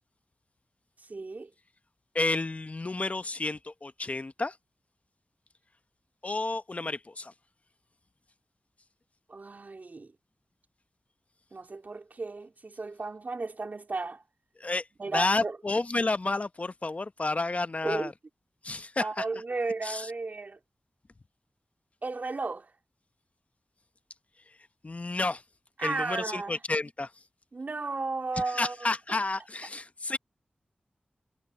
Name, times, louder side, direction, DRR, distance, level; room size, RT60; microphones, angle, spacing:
voice 1, 1.1-1.5 9.3-10.1 11.5-14.2 15.0-15.6 17.8-18.1 19.0-20.6 22.0-22.7 25.8-26.6 27.5-28.9, right 3 dB, 55° right, 3.6 m, -34 dB
voice 2, 2.1-4.6 6.2-7.3 14.6-14.9 15.1-18.1 18.6-19.2 19.8-20.1 24.8-25.4 25.8-27.1 28.5-30.2, left 3 dB, 40° left, 0.8 m, -30 dB
wide cardioid pair, 60°, 3 cm